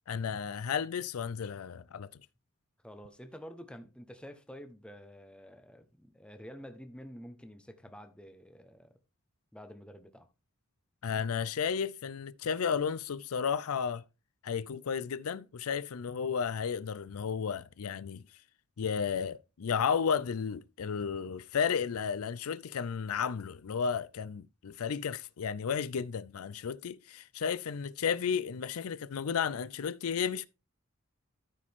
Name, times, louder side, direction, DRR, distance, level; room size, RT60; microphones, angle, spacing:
voice 1, 0.1-2.1 11.0-14.0 14.4-18.2 18.8-30.5, left 6 dB, 75° left, 0.5 m, -33 dB
voice 2, 2.8-9.0 9.5-10.3, equal, 5° left, 1.0 m, -49 dB
13.5 x 5.0 x 3.6 m
head